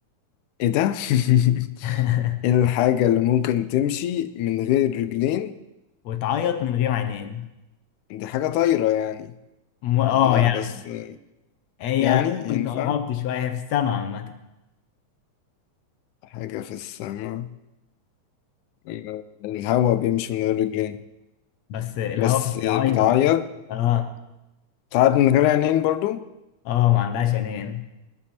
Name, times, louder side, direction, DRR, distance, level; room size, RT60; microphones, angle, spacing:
voice 1, 0.6-2.0 2.4-5.6 8.1-9.3 10.3-11.2 12.0-13.0 16.3-17.5 18.9-21.0 22.2-23.5 24.9-26.2, left 12 dB, 90° left, 2.2 m, -22 dB
voice 2, 1.8-2.4 6.1-7.4 9.8-10.7 11.8-14.3 21.7-23.1 23.7-24.1 26.7-27.8, left 11 dB, 70° left, 2.1 m, -23 dB
20.0 x 11.5 x 4.4 m
omnidirectional pair, 3.4 m